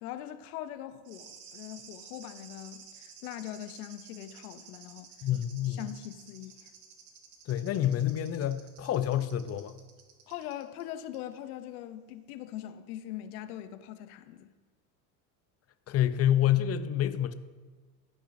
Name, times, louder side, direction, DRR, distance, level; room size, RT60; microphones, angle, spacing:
voice 1, 0.0-5.1 5.7-6.7 10.3-14.5, left 12 dB, 90° left, 0.7 m, -42 dB
sound 1, 1.0-10.8 11.1-11.2, right 6 dB, 80° right, 1.5 m, -52 dB
voice 2, 5.2-5.8 7.5-9.8 15.9-17.3, left 11 dB, 35° left, 0.6 m, -28 dB
14.5 x 6.1 x 2.6 m
supercardioid pair, 95°, 44 cm